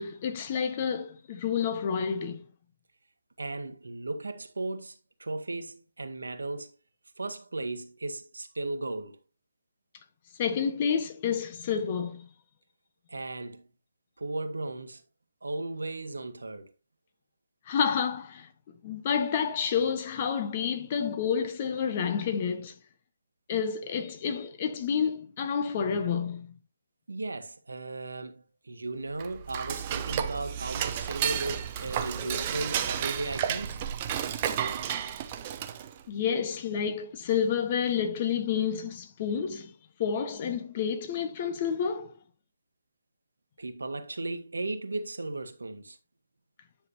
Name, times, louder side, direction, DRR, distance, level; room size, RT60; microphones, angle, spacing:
voice 1, 0.0-2.4 10.4-12.3 17.7-18.5 18.8-22.7 23.5-26.5 36.1-39.7 40.0-42.1, left 7 dB, 35° left, 1.3 m, -29 dB
voice 2, 3.4-6.7 7.2-9.2 13.1-13.6 14.2-15.0 15.4-16.7 27.1-33.8 43.6-46.0, right 2 dB, 70° right, 1.5 m, -36 dB
Dishes pots and pans / Cutlery silverware, 29.1-36.0, right 9 dB, 30° right, 0.9 m, -32 dB
10.5 x 6.2 x 2.8 m
figure-of-eight pair, 145°, 0 cm